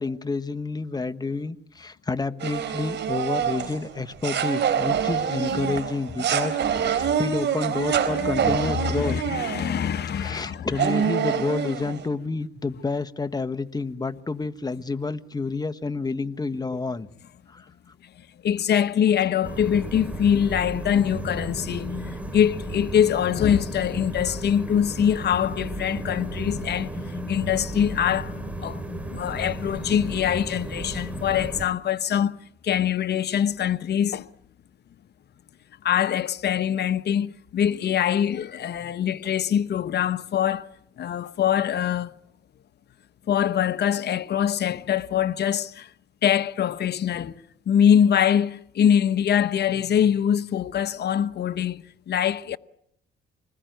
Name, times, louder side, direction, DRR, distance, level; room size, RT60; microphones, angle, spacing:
voice 1, 0.0-9.2 10.2-17.1 17.5-17.7, left 3 dB, 20° left, 1.3 m, -29 dB
sound 1, 2.4-9.9 10.4-10.5 10.7-12.1, right 8 dB, 60° right, 3.9 m, -26 dB
voice 2, 8.2-10.7 18.4-28.8 29.1-32.3 32.6-34.3 35.8-40.7 41.0-42.1 43.3-45.9 46.2-47.4 47.7-52.6, left 9 dB, 55° left, 1.0 m, -23 dB
sound 2, 19.4-31.7, equal, 5° right, 4.7 m, -33 dB
26.5 x 20.0 x 9.3 m
cardioid pair, 90°, 20 cm